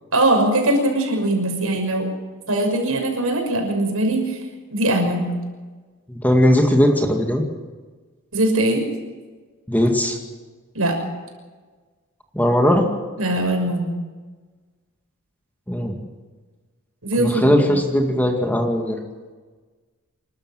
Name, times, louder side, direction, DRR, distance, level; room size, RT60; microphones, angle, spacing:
voice 1, 0.1-2.1 2.5-4.4 4.7-5.3 8.3-8.8 10.7-11.0 13.2-13.9 17.0-17.6, right 1 dB, 80° right, 2 dB, 6.2 m, -21 dB
voice 2, 6.1-7.4 9.7-10.2 12.3-12.9 15.7-16.0 17.2-19.0, equal, 10° left, 3 dB, 2.1 m, -18 dB
28.0 x 12.5 x 7.6 m, 1.4 s
head